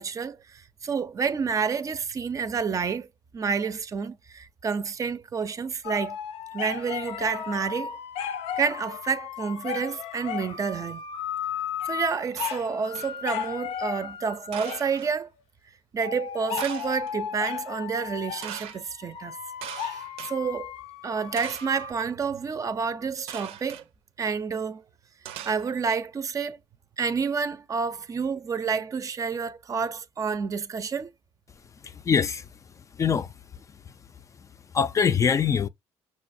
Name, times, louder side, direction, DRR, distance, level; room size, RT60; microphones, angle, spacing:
voice 1, 0.0-3.1 3.3-6.2 6.5-8.0 8.6-11.0 11.8-15.3 15.9-19.4 19.8-20.7 21.0-23.8 24.2-24.8 25.5-26.6 27.0-31.1, right 5 dB, 35° right, 0.5 m, -29 dB
sound 1, 5.8-15.1 16.0-21.9, left 9 dB, 85° left, 0.6 m, -35 dB
sound 2, 12.4-13.2 14.5-15.1 16.6-17.1 18.4-18.8 19.6-20.3 21.4-21.8 23.3-23.8 25.2-26.0, right 10 dB, 85° right, 0.6 m, -40 dB
voice 2, 31.8-32.5 32.8-33.9 34.7-35.7, left 6 dB, 30° left, 0.4 m, -25 dB
6.1 x 2.2 x 2.6 m
cardioid pair, 100°, 10 cm